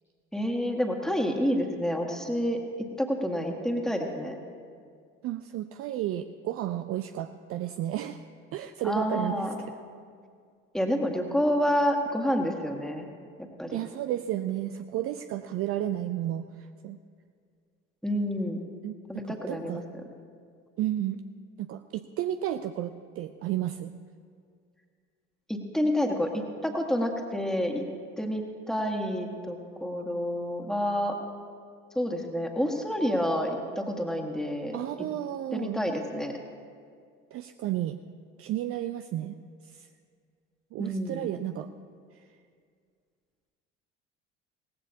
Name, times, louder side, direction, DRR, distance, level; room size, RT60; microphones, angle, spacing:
voice 1, 0.3-4.4 8.8-9.6 10.7-13.1 13.4-13.8 18.0-18.6 19.1-19.8 25.5-27.8 28.2-31.2 32.0-34.8 35.5-36.4 40.8-41.3, equal, ahead, 1 dB, 1.8 m, -29 dB
voice 2, 5.2-8.2 8.5-9.5 13.7-17.0 18.8-18.9 19.3-19.8 20.8-21.2 21.6-23.9 34.7-35.8 37.3-38.0 38.4-39.4 39.6-39.9 40.7-41.7, right 12 dB, 40° right, 9 dB, 0.5 m, -32 dB
18.0 x 15.0 x 2.8 m, 2.2 s
figure-of-eight pair, 60°, 36 cm